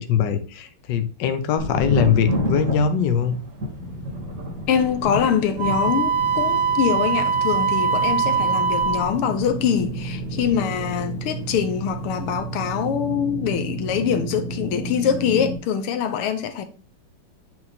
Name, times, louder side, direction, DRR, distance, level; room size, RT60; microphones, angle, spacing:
voice 1, 0.0-3.4, left 7 dB, 60° left, 1.4 m, -21 dB
Thunder, 1.6-11.2 11.5-12.2, left 1 dB, 45° right, 3.8 m, -31 dB
sound 1, 3.8-15.6, right 2 dB, 25° right, 4.3 m, -33 dB
voice 2, 4.7-16.6, left 8 dB, 85° left, 1.8 m, -24 dB
Wind instrument woodwind instrument, 5.6-9.1, right 5 dB, 70° right, 1.9 m, -22 dB
8.6 x 4.2 x 4.2 m
omnidirectional pair, 2.4 m